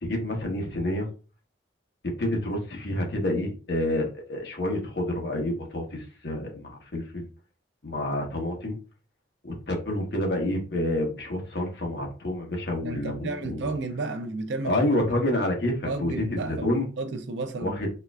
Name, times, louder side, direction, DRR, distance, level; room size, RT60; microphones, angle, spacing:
voice 1, 0.0-1.1 2.0-7.3 7.8-8.8 9.4-13.7 14.6-16.8 17.6-17.9, left 1 dB, 65° left, 1.0 m, -28 dB
voice 2, 12.8-14.8 15.1-15.3 15.8-17.8, right 3 dB, 85° right, 0.5 m, -33 dB
4.5 x 2.4 x 2.3 m
head